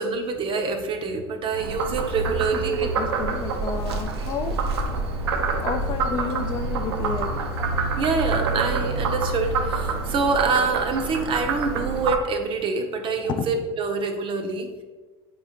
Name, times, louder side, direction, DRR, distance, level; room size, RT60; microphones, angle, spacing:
voice 1, 0.0-2.9 8.0-14.8, right 4 dB, 40° right, 6 dB, 0.6 m, -26 dB
sound 1, 1.0-13.7, left 2 dB, 70° left, 0.9 m, -46 dB
Frog, 1.5-12.2, right 4 dB, 80° right, 0.5 m, -27 dB
voice 2, 2.3-4.6 5.6-7.4 13.3-13.5, left 6 dB, 35° left, 7 dB, 0.3 m, -31 dB
4.1 x 3.6 x 2.9 m, 1.3 s
hypercardioid pair, 80°, 14 cm